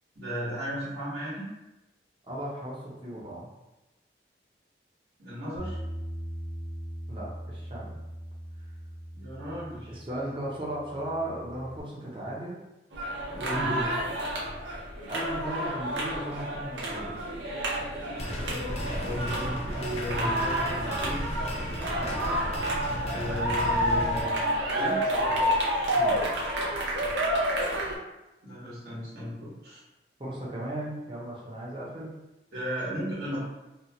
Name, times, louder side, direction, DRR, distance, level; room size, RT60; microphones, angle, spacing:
voice 1, 0.1-1.5 5.2-5.8 9.1-9.9 13.3-13.9 18.9-21.3 23.1-25.1 28.4-29.8 32.5-33.4, equal, 65° right, -10 dB, 1.2 m, -35 dB
voice 2, 2.3-3.5 7.1-8.0 9.9-12.6 15.1-17.2 21.9-22.2 25.9-26.2 30.2-32.1, right 1 dB, 30° right, -5 dB, 0.7 m, -36 dB
Bass guitar, 5.6-11.8, equal, 80° left, 0.7 m, -40 dB
sound 1, 12.9-28.0, equal, 85° right, 0.6 m, -29 dB
sound 2, 18.2-24.2, equal, 35° left, 0.5 m, -35 dB
2.7 x 2.3 x 2.8 m, 0.99 s
head